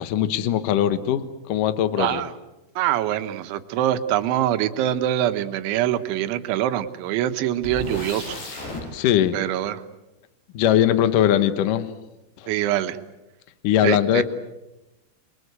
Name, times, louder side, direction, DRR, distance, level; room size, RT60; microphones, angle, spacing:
voice 1, 0.0-2.2 8.9-9.4 10.5-11.9 12.4-12.5 13.6-14.2, left 10 dB, 85° left, 11 dB, 1.8 m, -20 dB
voice 2, 2.0-2.3 2.8-8.4 9.3-9.8 12.5-13.0 13.8-14.2, right 12 dB, 75° right, 10 dB, 3.4 m, -24 dB
sound 1, 7.6-8.8, left 2 dB, 60° left, 8.0 m, -33 dB
29.5 x 22.5 x 8.2 m, 0.97 s
omnidirectional pair, 5.6 m